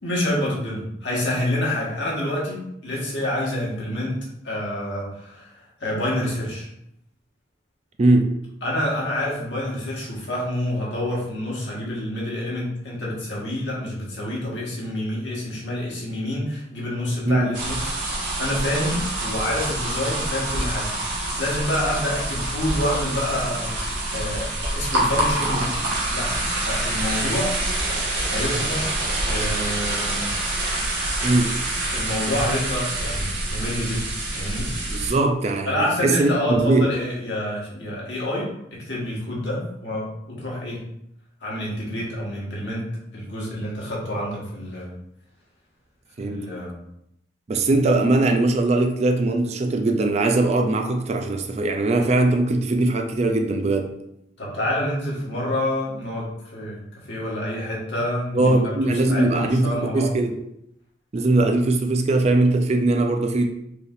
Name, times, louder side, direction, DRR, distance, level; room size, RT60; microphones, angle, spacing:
voice 1, 0.0-4.2 4.4-6.7 8.6-20.9 21.2-25.7 26.1-26.3 26.6-27.6 28.3-28.8 29.2-30.3 31.9-34.0 34.3-34.7 35.6-40.8 41.4-44.9 46.2-46.8 54.4-56.8 57.0-60.1, left 1 dB, 70° left, -5 dB, 1.4 m, -28 dB
voice 2, 8.0-8.3 17.2-17.5 31.2-31.6 34.9-36.9 46.2-46.5 47.5-54.0 58.3-60.4 61.1-63.5, right 2 dB, 35° right, 5 dB, 0.4 m, -20 dB
sound 1, 17.5-35.1, right 1 dB, 70° right, 1.3 m, -26 dB
4.8 x 3.3 x 2.5 m, 0.78 s
head